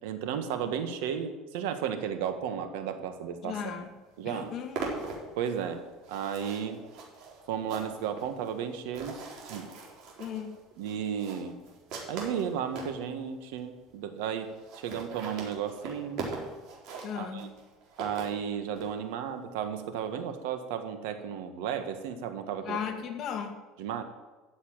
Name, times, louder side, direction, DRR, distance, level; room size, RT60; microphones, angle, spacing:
voice 1, 0.0-3.8 4.2-4.5 5.4-6.8 7.5-9.2 9.5-9.7 10.8-11.6 12.1-16.2 17.2-17.5 18.0-22.8 23.8-24.0, right 8 dB, 85° right, 8 dB, 1.7 m, -34 dB
voice 2, 3.4-4.0 4.2-5.1 10.2-10.6 17.0-17.5 22.6-23.6, left 7 dB, 40° left, 5 dB, 1.8 m, -36 dB
sound 1, 3.8-3.9 4.1-13.0 13.6-13.7 13.9-14.0 14.2-14.3 14.5-18.9, right 4 dB, 55° right, 4.0 m, -41 dB
13.5 x 7.3 x 9.1 m, 1.2 s
cardioid pair, 155°, 0 cm